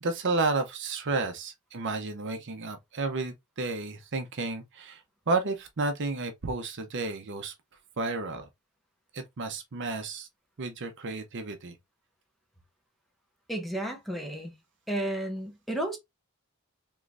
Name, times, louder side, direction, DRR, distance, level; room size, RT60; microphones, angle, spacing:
voice 1, 0.0-7.5 8.0-8.5 9.1-10.3 10.6-11.7, right 3 dB, 55° right, 0.7 m, -32 dB
voice 2, 13.5-14.6 14.9-16.0, right 1 dB, ahead, 0.9 m, -32 dB
3.7 x 3.1 x 2.4 m
head